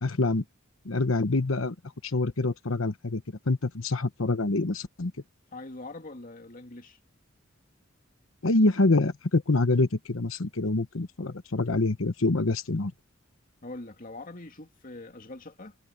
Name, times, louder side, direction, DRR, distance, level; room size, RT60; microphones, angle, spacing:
voice 1, 0.0-0.4 0.8-1.7 2.0-5.1 8.4-12.9, left 2 dB, 85° left, 1.1 m, -26 dB
voice 2, 5.5-7.0 13.6-15.8, left 2 dB, 45° left, 2.3 m, -43 dB
head